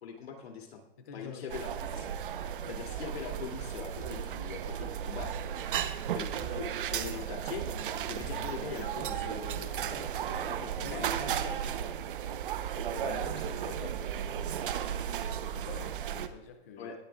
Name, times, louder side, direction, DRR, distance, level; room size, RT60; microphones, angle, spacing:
voice 1, 0.0-0.8 1.1-1.7 1.9-2.1 2.7-5.3 6.1-11.4 12.9-14.0 16.8-16.9, left 6 dB, 75° left, 2 dB, 2.9 m, -42 dB
voice 2, 1.0-1.6 6.6-6.7 10.8-12.0 14.3-14.6 15.2-16.9, left 5 dB, 15° left, 6 dB, 0.4 m, -48 dB
sound 1, 1.5-16.3, right 9 dB, 55° right, 0.9 m, -35 dB
sound 2, 4.0-4.2 5.2-5.4 6.4-6.6 7.0-7.2 7.6-7.8 8.2-8.4, right 4 dB, 10° right, 1.5 m, -43 dB
19.5 x 10.5 x 2.4 m, 0.92 s
hypercardioid pair, 170°, 31 cm